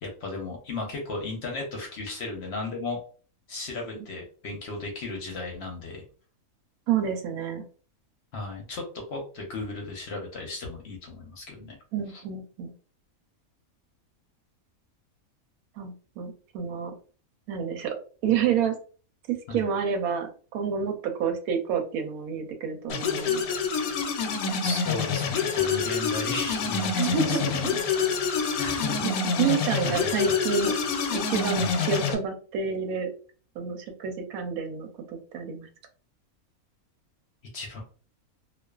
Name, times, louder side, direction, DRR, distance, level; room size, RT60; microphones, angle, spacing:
voice 1, 0.0-3.0 3.5-6.0 8.3-11.8 12.1-12.2 19.5-19.6 24.6-27.7 28.6-29.1 29.4-29.5 29.8-30.4 31.6-31.7 37.5-37.8, left 3 dB, 60° left, 1 dB, 0.8 m, -35 dB
voice 2, 6.9-7.6 11.9-12.7 15.8-16.9 17.5-17.9 18.2-18.7 19.3-23.4 26.9-27.7 29.0-29.1 29.4-30.7 31.1-33.1 33.6-34.9 35.3-35.7, right 7 dB, 85° right, 5 dB, 1.1 m, -28 dB
sound 1, 22.9-32.1, left 5 dB, 80° left, 1.0 m, -27 dB
2.3 x 2.3 x 2.2 m, 0.40 s
omnidirectional pair, 1.5 m